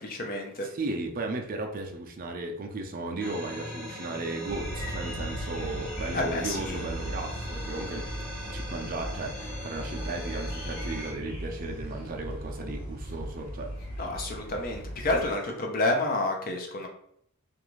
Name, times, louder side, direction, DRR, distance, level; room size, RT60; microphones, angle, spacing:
voice 1, 0.0-0.7 6.1-6.8 14.0-16.9, left 2 dB, 40° left, 2 dB, 0.5 m, -29 dB
voice 2, 0.6-8.1 8.5-13.7, right 2 dB, 40° right, 3 dB, 0.4 m, -35 dB
sound 1, 3.2-11.1, left 1 dB, 5° left, 0.8 m, -40 dB
sound 2, 4.5-15.3, right 1 dB, 90° left, 1.1 m, -38 dB
2.5 x 2.4 x 3.0 m, 0.69 s
head